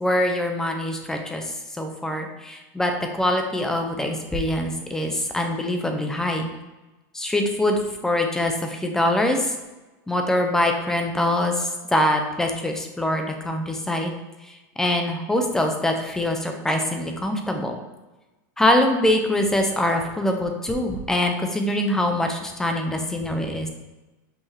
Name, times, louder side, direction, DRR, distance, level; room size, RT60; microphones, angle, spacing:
voice 1, 0.0-6.5 7.1-9.5 10.1-14.1 14.5-17.8 18.6-23.7, left 1 dB, 5° left, 4 dB, 0.4 m, -24 dB
5.6 x 2.7 x 3.1 m, 1.1 s
supercardioid pair, 160°, 10 cm